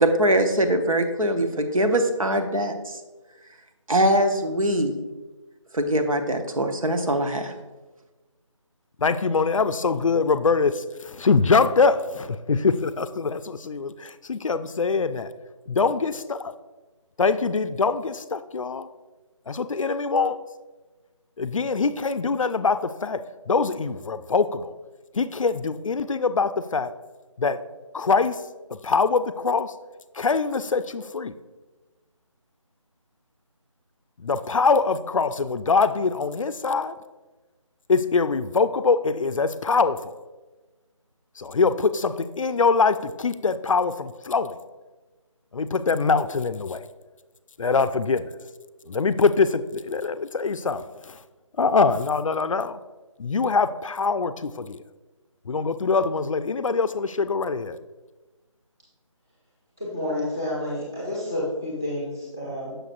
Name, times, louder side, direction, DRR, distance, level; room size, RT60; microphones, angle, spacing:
voice 1, 0.0-3.0 3.9-5.0 5.7-7.5, right 1 dB, 85° right, 5 dB, 0.9 m, -22 dB
voice 2, 9.0-15.3 15.7-16.5 17.2-18.9 19.5-20.4 21.4-24.7 25.1-26.9 27.4-27.6 27.9-28.4 28.7-29.7 30.1-31.3 34.2-37.0 37.9-40.1 41.4-44.6 45.5-46.9 47.6-48.4 48.9-51.2 51.6-52.8 53.2-54.8 55.5-57.8, left 4 dB, 75° left, 12 dB, 0.4 m, -23 dB
voice 3, 59.8-62.7, left 1 dB, 5° right, -7 dB, 0.4 m, -29 dB
6.5 x 6.0 x 2.5 m, 1.2 s
figure-of-eight pair, 160°, 17 cm